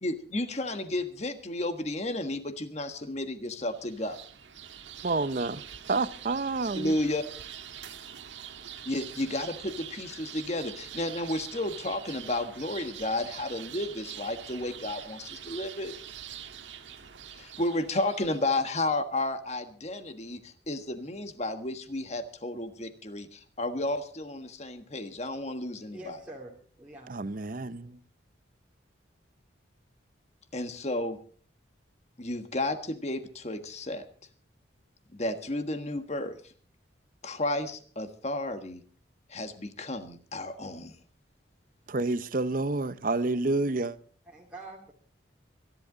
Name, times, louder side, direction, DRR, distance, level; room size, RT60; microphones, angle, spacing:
voice 1, 0.0-4.2 6.7-7.2 8.8-15.9 17.3-26.2 30.5-31.2 32.2-34.0 35.1-36.4 37.2-38.8 39.3-40.9, left 2 dB, 35° left, 1.5 m, -32 dB
sound 1, 3.6-18.8, right 9 dB, 80° right, 1.4 m, -44 dB
voice 2, 5.0-5.6 5.9-6.9 27.1-28.0 41.9-44.0, right 3 dB, 45° right, 0.7 m, -29 dB
voice 3, 25.7-27.1 44.2-44.9, right 1 dB, 5° right, 2.4 m, -45 dB
24.5 x 11.0 x 3.9 m
head